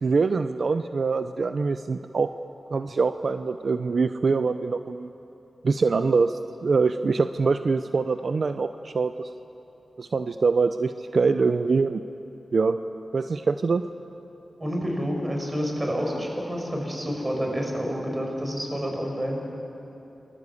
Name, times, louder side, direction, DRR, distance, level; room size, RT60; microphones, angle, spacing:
voice 1, 0.0-2.3 2.7-5.1 5.6-9.3 10.0-12.0 12.5-12.8 13.1-13.8, right 4 dB, 65° right, 9 dB, 0.7 m, -24 dB
voice 2, 14.6-19.4, equal, 25° right, 0 dB, 6.4 m, -28 dB
27.5 x 22.0 x 8.5 m, 2.9 s
cardioid pair, 60°, 0 cm